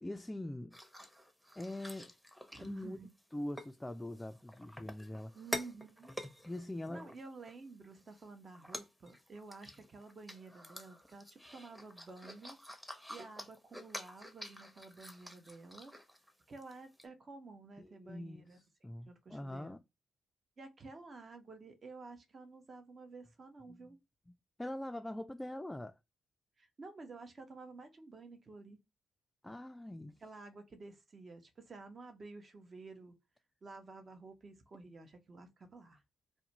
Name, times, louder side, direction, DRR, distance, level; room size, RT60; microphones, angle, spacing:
voice 1, 0.0-0.8 1.6-2.1 2.6-3.0 3.3-5.3 6.5-7.1 17.8-19.8 23.7-24.0 24.3-24.4 24.6-26.0 29.4-30.2, left 1 dB, 15° left, 0.3 m, -43 dB
sound 1, 0.7-3.2 3.6-3.7 4.1-7.6 8.0-8.2 8.5-16.3 16.6-16.7 17.0-17.1, equal, 5° right, 0.7 m, -48 dB
voice 2, 2.5-3.1 5.3-6.1 6.9-12.6 13.1-15.9 16.5-18.6 19.1-19.8 20.6-24.0 26.6-28.8 30.2-33.2 33.6-36.0, right 3 dB, 45° right, 0.7 m, -51 dB
2.3 x 2.2 x 2.9 m
hypercardioid pair, 45°, 0 cm